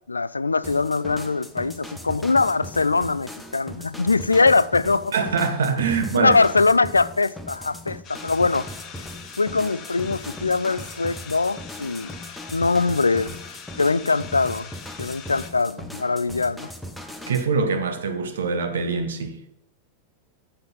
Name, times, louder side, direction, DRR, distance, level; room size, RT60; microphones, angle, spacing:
voice 1, 0.1-5.1 6.1-8.7 9.4-12.1 12.5-13.4 13.8-14.7 15.0-16.7, left 3 dB, 80° left, 0.3 m, -22 dB
sound 1, 0.6-17.5, left 1 dB, 5° left, 1.0 m, -39 dB
voice 2, 5.1-6.3 17.3-19.4, right 5 dB, 65° right, 1.1 m, -24 dB
sound 2, 8.0-15.5, left 7 dB, 30° left, 1.2 m, -42 dB
7.9 x 6.6 x 5.5 m
figure-of-eight pair, 90°, 0 cm